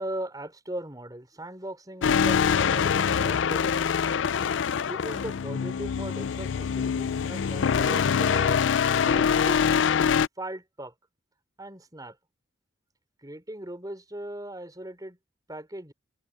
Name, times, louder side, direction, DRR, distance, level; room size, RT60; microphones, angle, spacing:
voice 1, 0.0-4.4 4.8-8.7 9.0-9.6 10.4-10.9 11.6-12.2 13.2-15.2 15.5-15.9, right 1 dB, 20° right, 4.6 m, -38 dB
sound 1, 2.0-10.3, left 7 dB, 90° left, 0.4 m, -24 dB
head